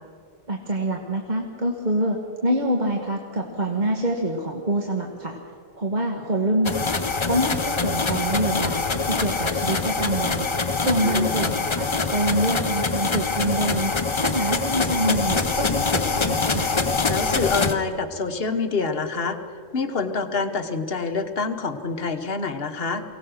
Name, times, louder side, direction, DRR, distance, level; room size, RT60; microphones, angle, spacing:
voice 1, 0.5-5.4 5.8-7.0 7.2-10.5 10.8-13.9 14.2-16.7, right 1 dB, 35° right, 2 dB, 1.4 m, -26 dB
sound 1, 6.6-17.7, left 4 dB, 30° left, 0.6 m, -24 dB
voice 2, 11.0-11.4 17.1-19.4 19.7-23.0, left 4 dB, 45° left, 8 dB, 1.3 m, -26 dB
23.5 x 17.5 x 6.4 m, 2.3 s
omnidirectional pair, 1.4 m